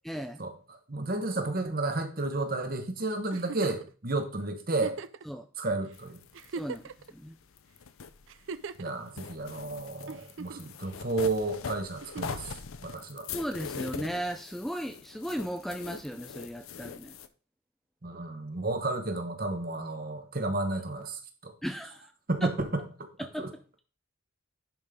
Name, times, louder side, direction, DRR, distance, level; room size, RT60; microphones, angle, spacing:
voice 1, 0.0-0.4 5.2-5.5 6.5-7.3 13.3-17.2 21.6-22.1 22.4-22.5 23.2-23.5, equal, ahead, 0.4 m, -36 dB
voice 2, 0.9-5.0 5.6-6.2 8.8-12.5 12.8-13.3 18.0-21.5 22.3-23.1 23.4-23.5, right 2 dB, 45° right, 1.2 m, -32 dB
Giggle, 3.3-3.9 4.7-5.2 5.9-6.0 6.3-7.1 8.3-8.9 10.1-10.7 12.0-12.5 14.0-14.1, right 5 dB, 65° right, 0.4 m, -40 dB
sound 1, 5.9-8.8 9.1-17.3, left 5 dB, 80° left, 0.7 m, -42 dB
10.5 x 5.1 x 3.7 m
head